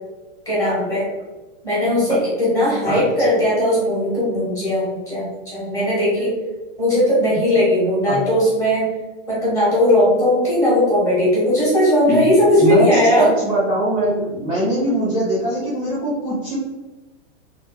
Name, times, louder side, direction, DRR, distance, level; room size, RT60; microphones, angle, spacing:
voice 1, 0.5-1.1 1.6-6.3 6.8-8.9 9.3-13.3, left 1 dB, 10° left, -8 dB, 1.0 m, -18 dB
voice 2, 12.6-16.6, right 1 dB, 15° right, -8 dB, 0.7 m, -21 dB
3.3 x 2.6 x 3.3 m, 1.1 s
supercardioid pair, 170°, 37 cm